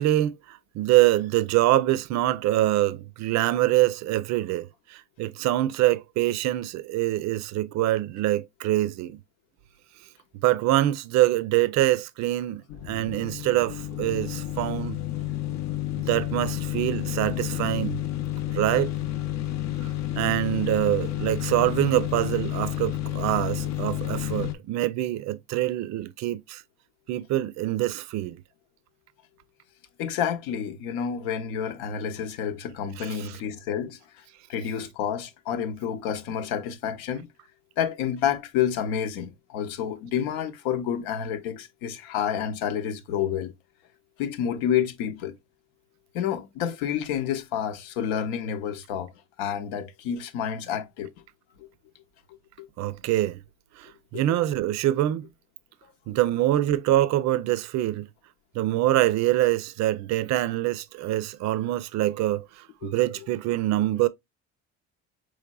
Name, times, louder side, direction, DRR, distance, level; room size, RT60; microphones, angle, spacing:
voice 1, 0.0-9.2 10.4-15.0 16.1-18.0 18.5-18.9 19.8-19.9 20.2-26.6 27.1-28.4 33.0-33.4 52.8-53.4 53.8-55.3 56.1-58.1 58.5-64.1, right 15 dB, 50° right, 0.5 m, -25 dB
sound 1, 12.7-24.5, left 14 dB, 50° left, 0.6 m, -30 dB
voice 2, 30.0-34.2 34.5-37.3 37.8-43.5 44.2-45.4 46.1-49.1 49.4-51.1 51.6-51.7 52.6-52.7 54.1-54.2 62.8-62.9, left 9 dB, 80° left, 0.8 m, -29 dB
4.8 x 3.1 x 2.2 m
supercardioid pair, 95°, 35 cm